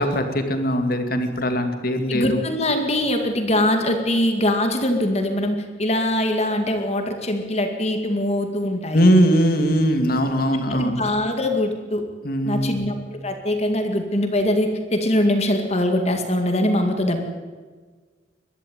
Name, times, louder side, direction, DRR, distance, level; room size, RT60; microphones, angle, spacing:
voice 1, 0.0-2.4 8.9-11.0 12.2-12.8, equal, 55° left, 6 dB, 2.3 m, -20 dB
voice 2, 2.1-9.1 10.7-12.0 12.5-17.2, left 1 dB, 35° left, 5 dB, 2.1 m, -22 dB
22.5 x 12.5 x 9.3 m, 1.5 s
head